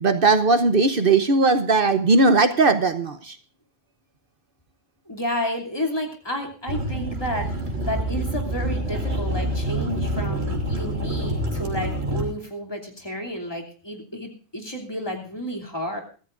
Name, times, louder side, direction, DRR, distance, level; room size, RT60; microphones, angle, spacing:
voice 1, 0.0-3.4, right 3 dB, 55° right, 10 dB, 1.1 m, -18 dB
voice 2, 5.1-7.5 7.8-16.0, equal, 20° left, 0 dB, 3.0 m, -31 dB
sound 1, 6.7-12.2, right 1 dB, 80° right, 3.2 m, -27 dB
23.5 x 14.5 x 2.6 m, 0.39 s
omnidirectional pair, 1.1 m